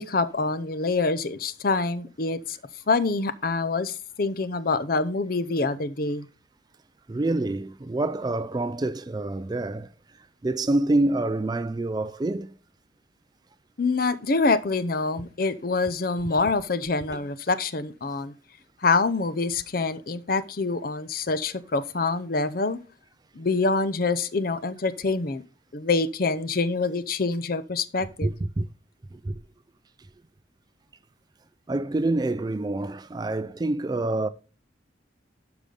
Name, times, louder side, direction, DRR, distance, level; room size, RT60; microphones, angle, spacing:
voice 1, 0.0-2.6 2.9-6.3 13.8-18.3 18.8-22.8 23.3-25.4 25.7-28.3, left 3 dB, 50° left, 0.6 m, -26 dB
voice 2, 7.1-9.9 10.2-12.5 28.2-28.7 29.1-29.4 31.7-34.3, right 2 dB, 20° right, 0.3 m, -27 dB
12.0 x 5.0 x 3.9 m
head